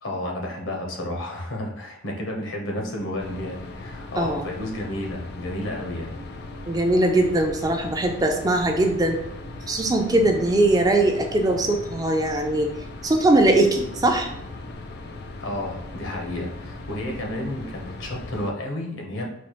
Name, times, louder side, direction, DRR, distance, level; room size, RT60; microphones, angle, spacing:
voice 1, 0.0-6.2 15.4-19.2, left 1 dB, 80° left, 0 dB, 1.0 m, -31 dB
sound 1, 3.2-18.5, left 2 dB, 55° left, 0.4 m, -38 dB
voice 2, 4.2-4.5 6.7-9.2 9.7-12.7 13.0-14.3, right 2 dB, 20° right, 3 dB, 0.3 m, -21 dB
4.2 x 2.4 x 3.0 m, 0.81 s
head